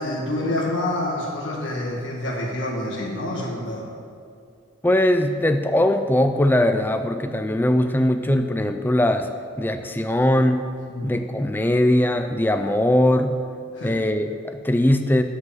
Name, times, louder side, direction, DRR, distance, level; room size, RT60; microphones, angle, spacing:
voice 1, 0.0-3.9 10.9-11.1 13.7-14.0, left 1 dB, 80° left, -3 dB, 1.6 m, -27 dB
voice 2, 4.8-9.3 9.6-10.7 11.0-13.4 13.8-15.2, left 1 dB, 10° left, 7 dB, 0.4 m, -20 dB
7.7 x 6.2 x 7.3 m, 2.3 s
head